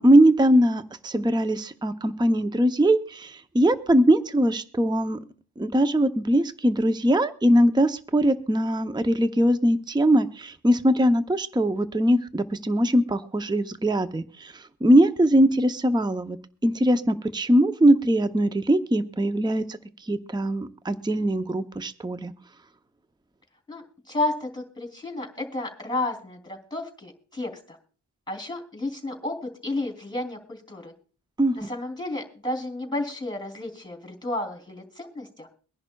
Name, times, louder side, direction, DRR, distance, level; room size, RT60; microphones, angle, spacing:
voice 1, 0.0-5.2 5.6-16.4 16.6-22.3 31.4-31.7, right 1 dB, 10° right, 10 dB, 0.6 m, -21 dB
voice 2, 23.7-27.8 28.3-30.9 31.5-35.5, left 2 dB, 10° left, 5 dB, 2.8 m, -32 dB
23.5 x 10.5 x 2.3 m, 0.39 s
wide cardioid pair, 80°, 38 cm